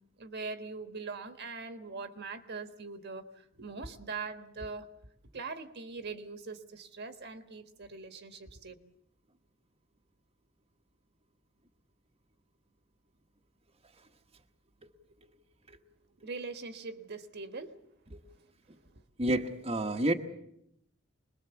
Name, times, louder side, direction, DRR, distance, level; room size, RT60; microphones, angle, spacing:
voice 1, 0.2-4.9 5.3-8.8 16.2-17.8 18.9-19.0, right 4 dB, 55° right, 8 dB, 1.5 m, -42 dB
voice 2, 19.2-20.1, right 1 dB, 30° right, 2 dB, 1.2 m, -30 dB
25.5 x 21.0 x 7.1 m, 0.79 s
head